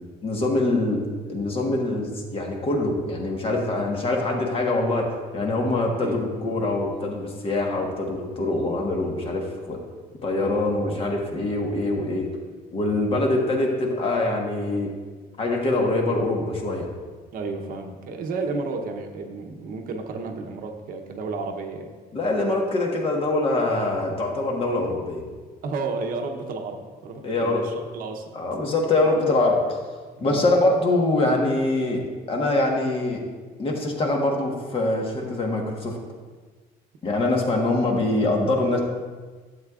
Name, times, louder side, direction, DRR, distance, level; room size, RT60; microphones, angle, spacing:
voice 1, 0.2-1.0 1.3-5.1 5.3-9.8 10.2-12.3 12.7-14.9 15.4-16.9 22.1-25.2 27.2-27.6 28.3-29.9 30.2-33.2 33.6-36.0 37.0-38.8, left 2 dB, 35° left, 0 dB, 1.3 m, -24 dB
voice 2, 17.3-21.9 25.6-28.3 30.2-30.5, right 3 dB, 60° right, 4 dB, 0.9 m, -32 dB
11.5 x 7.9 x 2.4 m, 1.4 s
cardioid pair, 150°, 16 cm